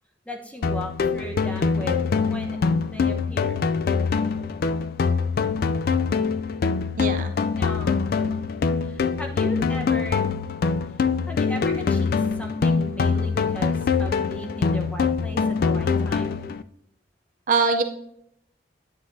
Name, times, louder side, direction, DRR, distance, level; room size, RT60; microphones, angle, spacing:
voice 1, 0.3-3.6 7.5-8.0 8.8-10.3 11.3-16.4, right 1 dB, 10° left, 1 dB, 1.0 m, -37 dB
sound 1, 0.6-16.6, left 5 dB, 55° left, 0.3 m, -24 dB
voice 2, 7.0-7.3 17.5-17.8, right 4 dB, 50° right, 7 dB, 0.6 m, -22 dB
9.5 x 9.4 x 2.7 m, 0.76 s
head